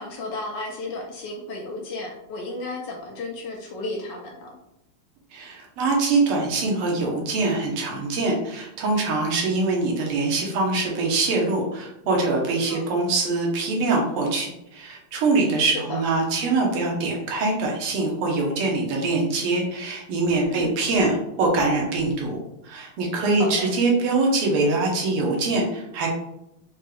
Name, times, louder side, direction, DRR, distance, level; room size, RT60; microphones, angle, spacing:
voice 1, 0.0-4.6 12.7-12.8 15.7-16.0 20.5-20.8 23.4-23.7, left 2 dB, 75° left, 1 dB, 1.1 m, -33 dB
voice 2, 5.3-22.4 22.6-26.1, right 3 dB, 85° right, 0 dB, 1.8 m, -23 dB
5.1 x 2.2 x 3.3 m, 0.85 s
omnidirectional pair, 2.4 m